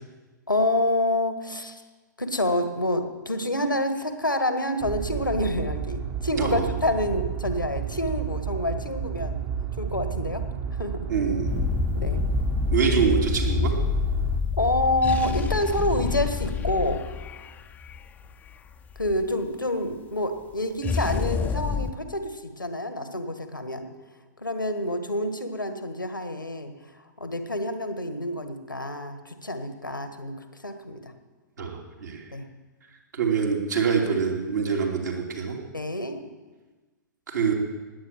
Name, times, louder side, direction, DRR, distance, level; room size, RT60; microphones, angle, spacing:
voice 1, 0.5-1.8 2.2-9.4 9.8-10.4 10.7-11.1 11.9-12.2 14.6-17.0 19.0-23.9 24.4-26.7 27.2-30.4 30.6-31.1 32.3-32.5 35.7-36.2, left 1 dB, 85° left, 8 dB, 1.7 m, -27 dB
sound 1, 4.8-14.4, right 8 dB, 30° right, 1.2 m, -31 dB
voice 2, 6.4-6.7 11.1-11.7 12.7-13.7 31.6-32.2 33.1-35.6 37.3-37.5, right 6 dB, 65° right, -1 dB, 2.9 m, -25 dB
sound 2, 11.5-19.2 20.8-21.9, left 6 dB, 15° left, 0.7 m, -27 dB
19.5 x 8.7 x 7.5 m, 1.3 s
figure-of-eight pair, 115°, 10 cm